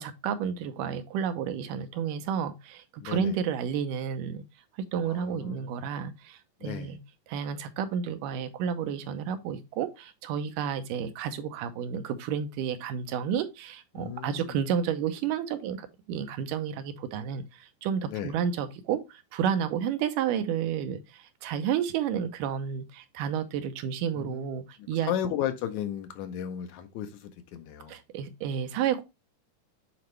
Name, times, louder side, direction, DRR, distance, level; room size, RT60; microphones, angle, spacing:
voice 1, 0.0-4.4 4.8-7.0 7.3-25.1 27.9-29.0, right 8 dB, 90° right, 2.4 m, -31 dB
voice 2, 1.9-2.2 3.0-3.4 5.0-5.8 6.6-6.9 13.9-14.6 18.1-18.3 24.2-24.6 25.0-28.0, left 10 dB, 75° left, 2.0 m, -35 dB
8.8 x 4.2 x 3.1 m
omnidirectional pair, 3.8 m